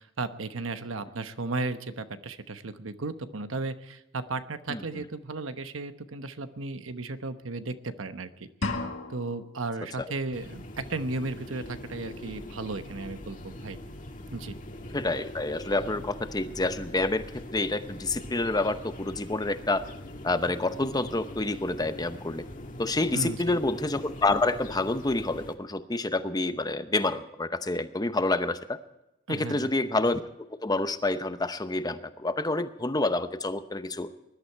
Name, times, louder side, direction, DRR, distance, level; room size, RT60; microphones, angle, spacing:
voice 1, 0.0-8.5 9.1-13.8 14.3-14.6 23.1-23.6 29.3-29.7, right 3 dB, 85° right, 10 dB, 1.0 m, -35 dB
sound 1, 8.6-9.6, left 2 dB, 75° left, 1.9 m, -33 dB
sound 2, 10.3-25.5, left 1 dB, 40° left, 1.5 m, -42 dB
voice 2, 14.9-17.2 17.5-19.8 20.2-22.4 22.8-28.8 29.3-30.2 30.6-34.1, left 2 dB, 20° left, 10 dB, 0.8 m, -28 dB
20.5 x 11.5 x 4.6 m, 0.92 s
head